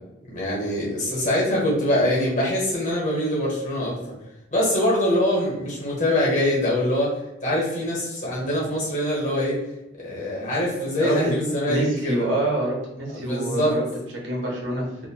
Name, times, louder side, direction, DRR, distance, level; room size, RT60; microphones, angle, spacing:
voice 1, 0.3-4.0 4.5-7.1 7.4-9.6 10.0-12.2 13.1-13.8, left 1 dB, 40° left, -4 dB, 1.0 m, -23 dB
voice 2, 11.0-11.3 11.7-13.8 14.1-14.9, right 1 dB, 65° right, -2 dB, 0.7 m, -26 dB
2.6 x 2.1 x 2.8 m, 0.95 s
head